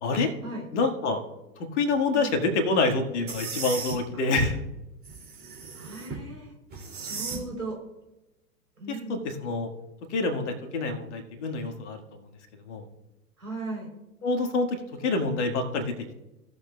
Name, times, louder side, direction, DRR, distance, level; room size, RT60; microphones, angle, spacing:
voice 1, 0.0-0.3 0.7-1.2 1.6-4.6 7.1-7.2 8.9-9.7 10.1-12.0 12.7-12.9 14.2-15.9, left 3 dB, 50° left, 5 dB, 1.7 m, -27 dB
sound 1, 3.3-4.0 5.0-6.2 6.7-7.4, right 5 dB, 20° right, 2.7 m, -36 dB
voice 2, 5.8-6.5 7.0-7.8 8.8-9.2 13.4-13.9, right 2 dB, 75° right, 0 dB, 3.7 m, -37 dB
17.0 x 6.8 x 2.3 m, 0.96 s
figure-of-eight pair, 100°, 45 cm